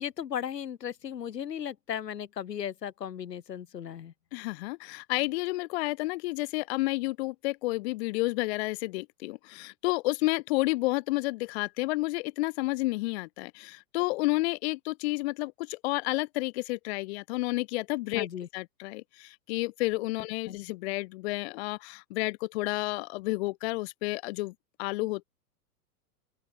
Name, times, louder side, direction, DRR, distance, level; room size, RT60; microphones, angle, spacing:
voice 1, 0.0-4.1 18.1-18.5 20.5-20.6, left 9 dB, 85° left, 1.8 m, -36 dB
voice 2, 4.3-18.3 18.5-24.5 24.8-25.2, left 22 dB, 45° left, 0.5 m, -31 dB
open air
hypercardioid pair, 110°, 48 cm